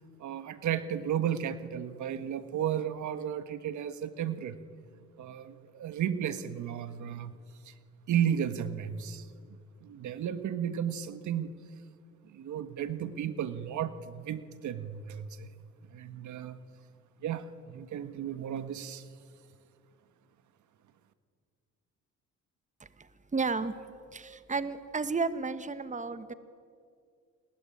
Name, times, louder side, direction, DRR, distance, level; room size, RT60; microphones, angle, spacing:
voice 1, 0.2-4.6 5.2-7.3 7.6-7.7 8.1-9.3 9.8-11.5 12.3-15.5 15.9-16.6 17.2-19.0, right 9 dB, 75° right, 11 dB, 1.7 m, -33 dB
voice 2, 22.8-23.8 24.1-26.3, right 4 dB, 25° right, 12 dB, 1.5 m, -33 dB
29.0 x 21.5 x 9.3 m, 2.2 s
cardioid pair, 90°, 30 cm